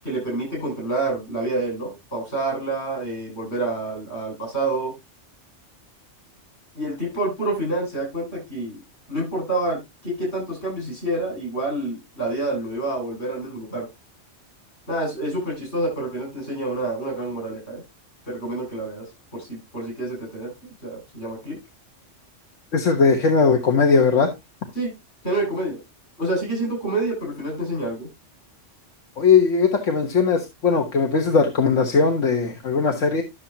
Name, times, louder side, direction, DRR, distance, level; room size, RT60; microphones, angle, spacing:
voice 1, 0.0-4.9 6.7-8.8 9.1-13.9 14.9-17.8 18.2-19.0 19.3-21.6 24.7-24.9 25.2-25.8 26.2-28.1, right 2 dB, 60° left, -1 dB, 8.0 m, -28 dB
voice 2, 22.7-24.3 29.2-33.2, left 5 dB, 85° left, 4 dB, 1.6 m, -19 dB
12.5 x 6.9 x 2.8 m, 0.21 s
omnidirectional pair, 1.2 m